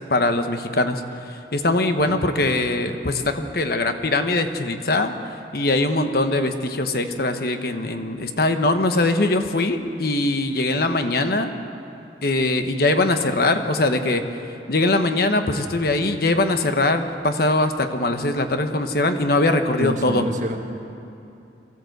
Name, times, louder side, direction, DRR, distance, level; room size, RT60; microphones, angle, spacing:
voice 1, 0.1-5.1 5.5-11.5 12.2-14.2 14.7-20.3, left 2 dB, 60° left, 7 dB, 1.2 m, -21 dB
voice 2, 19.8-20.6, right 1 dB, 45° right, 2 dB, 1.8 m, -28 dB
23.5 x 14.5 x 8.0 m, 2.8 s
head